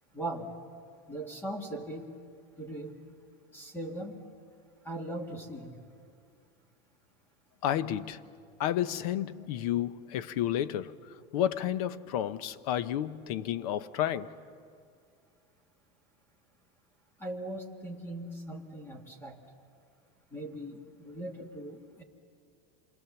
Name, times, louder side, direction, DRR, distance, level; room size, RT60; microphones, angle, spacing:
voice 1, 0.1-0.5 1.1-2.1 2.6-2.9 3.5-4.2 4.9-5.7 17.2-19.4 20.3-22.0, right 1 dB, 10° left, 1.7 m, -39 dB
voice 2, 7.6-8.2 8.6-11.0 11.3-14.3, left 11 dB, 65° left, 0.8 m, -31 dB
27.5 x 22.5 x 7.1 m
supercardioid pair, 175°, 21 cm